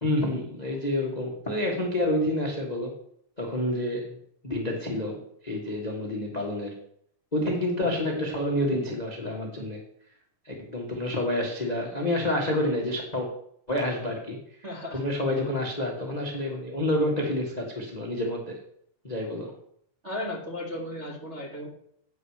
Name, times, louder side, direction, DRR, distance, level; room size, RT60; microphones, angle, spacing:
voice 1, 0.0-2.9 3.4-4.2 4.4-6.8 7.3-9.8 10.4-13.3 13.7-14.4 14.9-18.6 19.0-19.5, left 1 dB, 55° left, 0 dB, 0.4 m, -28 dB
voice 2, 14.6-15.0 20.0-21.7, left 1 dB, 35° right, -1 dB, 1.1 m, -35 dB
9.5 x 4.9 x 7.0 m, 0.69 s
omnidirectional pair, 3.6 m